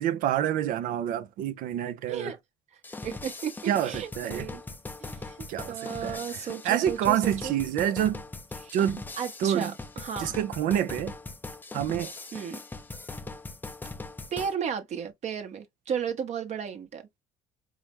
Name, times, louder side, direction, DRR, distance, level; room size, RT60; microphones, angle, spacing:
voice 1, 0.0-2.3 3.7-4.5 5.5-6.2 6.6-8.2 8.7-9.0 9.4-9.7 10.2-11.1 11.7-12.1, right 11 dB, 70° right, 0.6 m, -27 dB
sound 1, 2.8-14.5, left 3 dB, 15° left, 0.4 m, -40 dB
voice 2, 3.0-4.6 5.0-7.6 8.6-8.8 9.2-10.4 12.3-12.6 14.3-17.0, right 7 dB, 50° right, 1.0 m, -34 dB
4.8 x 2.1 x 3.0 m
supercardioid pair, 85°, 15 cm